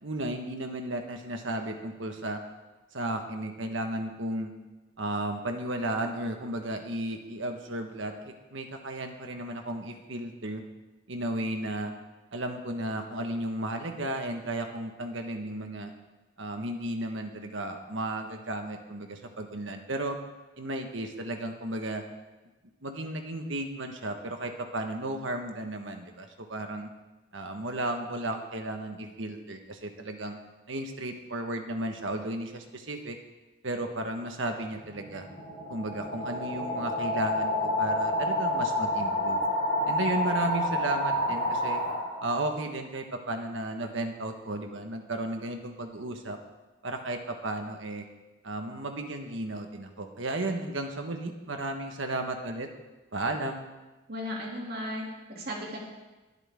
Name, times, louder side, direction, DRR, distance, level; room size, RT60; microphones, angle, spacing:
voice 1, 0.0-2.4 2.9-4.5 5.0-10.6 11.1-11.9 12.3-15.9 16.4-20.2 20.6-22.0 22.8-26.9 27.3-30.4 30.7-33.2 33.6-35.3 35.7-39.4 39.9-41.8 42.2-46.4 46.8-48.1 48.4-52.7 53.1-53.7, right 1 dB, 70° right, 4 dB, 1.4 m, -34 dB
sound 1, 34.8-42.5, left 1 dB, 25° left, 5.0 m, -29 dB
voice 2, 54.1-55.8, equal, 50° right, -2 dB, 2.7 m, -36 dB
21.5 x 8.2 x 3.7 m, 1.1 s
head